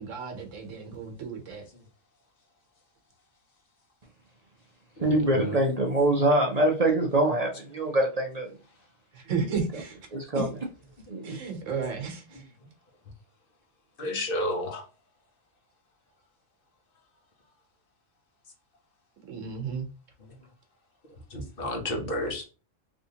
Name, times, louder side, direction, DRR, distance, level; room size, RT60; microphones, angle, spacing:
voice 1, 0.0-1.6 9.1-10.0 10.3-10.4 11.2-12.4 14.1-14.2 19.3-19.9, right 5 dB, 80° right, 1.1 m, -33 dB
voice 2, 5.0-8.5 10.1-10.5 11.1-11.3, right 1 dB, 45° right, 0.5 m, -24 dB
voice 3, 14.0-14.8 21.3-22.5, left 1 dB, 50° left, 1.0 m, -31 dB
3.4 x 2.7 x 2.7 m
omnidirectional pair, 1.3 m